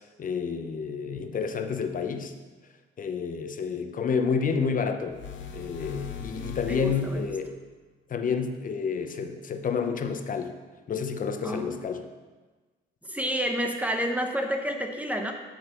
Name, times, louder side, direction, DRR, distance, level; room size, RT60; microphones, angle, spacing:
voice 1, 0.2-2.3 3.0-5.2 5.5-7.6 8.1-10.6 10.9-12.0, left 6 dB, 45° left, 7 dB, 0.8 m, -29 dB
sound 1, 5.1-7.5, left 7 dB, 70° left, 0.9 m, -39 dB
voice 2, 6.7-7.3 11.4-11.7 13.1-15.3, equal, 5° right, 3 dB, 0.9 m, -29 dB
7.7 x 4.0 x 6.7 m, 1.3 s
cardioid pair, 90°, 20 cm